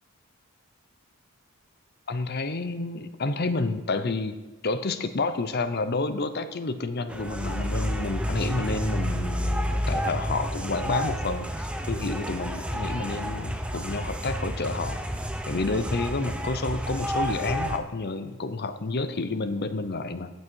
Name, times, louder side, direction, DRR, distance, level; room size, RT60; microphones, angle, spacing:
voice 1, 2.1-4.4 4.6-15.0 15.5-20.3, left 3 dB, 50° left, 11 dB, 0.7 m, -30 dB
sound 1, 7.1-17.8, equal, 5° right, 0.7 m, -30 dB
16.0 x 6.3 x 4.6 m, 1.2 s
head